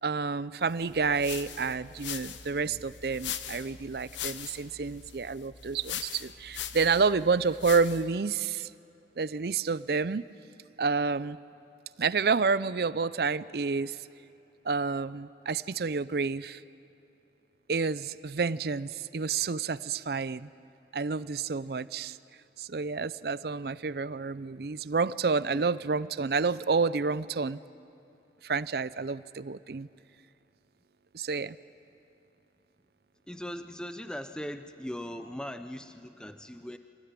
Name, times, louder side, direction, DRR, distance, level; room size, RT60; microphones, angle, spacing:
voice 1, 0.0-8.7 9.2-10.3 10.8-11.4 12.0-14.0 14.6-16.6 17.7-20.5 20.9-22.2 22.6-27.6 28.4-29.9 31.1-31.6, right 4 dB, 55° right, 17 dB, 0.5 m, -29 dB
sound 1, 0.8-8.2, left 9 dB, 90° left, 1.1 m, -41 dB
voice 2, 33.3-36.8, equal, 5° left, 9 dB, 0.6 m, -39 dB
25.0 x 18.5 x 9.7 m, 2.8 s
head